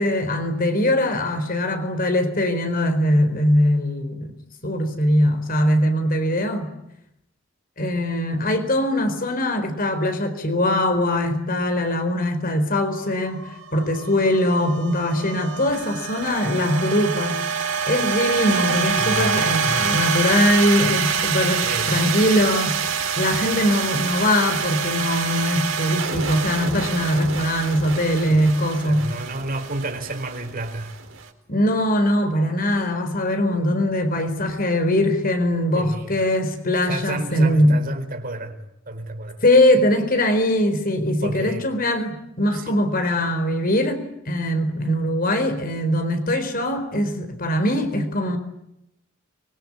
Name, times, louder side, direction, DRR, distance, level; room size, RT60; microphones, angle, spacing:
voice 1, 0.0-4.3 4.6-6.7 7.8-17.4 17.9-22.8 23.2-29.1 31.5-37.8 39.4-48.4, left 1 dB, 45° left, 4.4 m, -21 dB
sound 1, 12.9-31.2, right 6 dB, 75° right, 4.1 m, -26 dB
voice 2, 19.0-19.3 21.6-22.1 28.8-31.0 35.7-36.1 36.9-39.4 41.2-41.7 42.5-42.8, right 2 dB, 45° right, 4.3 m, -31 dB
24.5 x 23.5 x 9.8 m
head